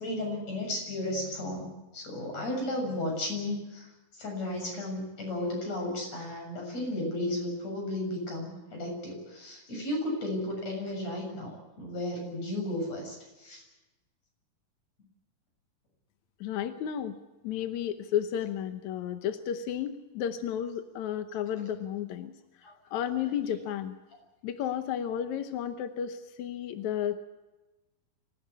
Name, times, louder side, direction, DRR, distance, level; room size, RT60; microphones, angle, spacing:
voice 1, 0.0-1.7 1.9-13.6 22.6-22.7, left 1 dB, 45° left, 1 dB, 8.3 m, -34 dB
voice 2, 16.4-17.2 17.4-22.3 22.9-24.0 24.4-27.2, left 9 dB, 70° left, 8 dB, 1.9 m, -32 dB
25.5 x 17.0 x 8.5 m, 1.1 s
omnidirectional pair, 4.4 m